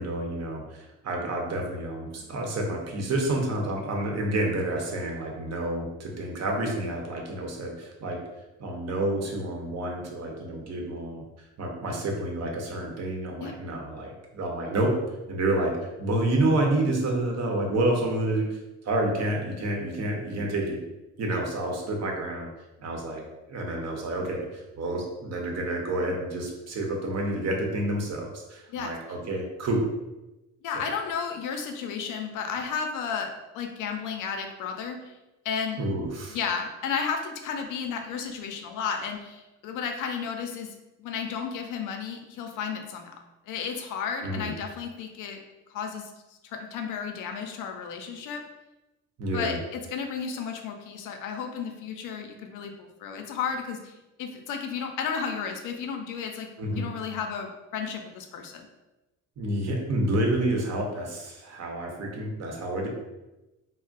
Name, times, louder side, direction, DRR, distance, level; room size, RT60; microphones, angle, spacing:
voice 1, 0.0-8.2 8.6-11.2 11.6-15.0 15.3-15.7 16.0-18.6 18.8-20.8 21.2-22.5 22.8-23.2 23.5-29.9 30.7-30.8 35.7-36.4 44.2-44.5 49.2-49.6 56.6-56.9 59.4-62.9, right 1 dB, 60° right, 1 dB, 0.8 m, -29 dB
voice 2, 30.6-35.1 35.4-35.8 36.3-43.2 43.5-45.4 45.7-46.1 46.4-48.4 49.3-53.9 54.2-56.5 56.7-58.7, left 6 dB, 85° left, 5 dB, 0.5 m, -33 dB
2.4 x 2.0 x 3.8 m, 1.0 s
cardioid pair, 90°, 30 cm